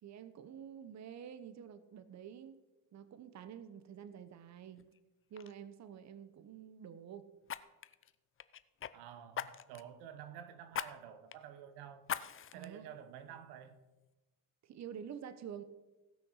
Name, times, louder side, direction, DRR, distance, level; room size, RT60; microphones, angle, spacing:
voice 1, 0.0-2.6 2.9-4.9 5.3-7.3 12.5-12.9 14.6-15.6, right 8 dB, 45° right, 0.9 m, -49 dB
Fire, 4.8-5.0 5.3-5.5 7.5-8.9 9.3-9.9 10.7-10.9 11.3-11.4 12.0-12.7 13.2-13.3, left 9 dB, 35° left, 0.6 m, -41 dB
voice 2, 8.9-12.0 12.5-13.8, right 9 dB, 85° right, 1.2 m, -50 dB
16.5 x 6.1 x 6.4 m
supercardioid pair, 85°, 38 cm